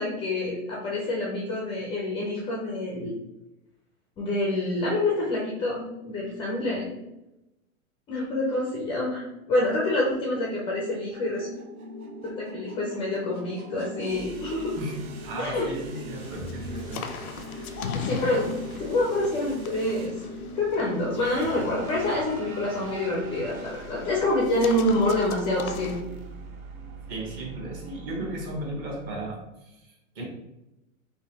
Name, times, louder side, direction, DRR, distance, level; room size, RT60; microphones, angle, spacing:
voice 1, 0.0-3.1 4.2-6.9 8.1-9.2 9.5-11.5 12.2-14.8 15.4-15.7 17.9-20.1 20.6-26.0, left 1 dB, 15° left, -3 dB, 0.4 m, -27 dB
sound 1, 10.5-29.3, right 3 dB, 85° right, 0.7 m, -45 dB
sound 2, 11.2-21.2, equal, 55° right, 1.2 m, -42 dB
voice 2, 14.8-17.1 17.4-17.7 27.1-30.2, right 1 dB, 35° right, -1 dB, 1.2 m, -35 dB
sound 3, 16.2-26.0, left 6 dB, 90° left, 0.5 m, -39 dB
4.0 x 2.6 x 2.8 m, 0.94 s
hypercardioid pair, 120°, 42 cm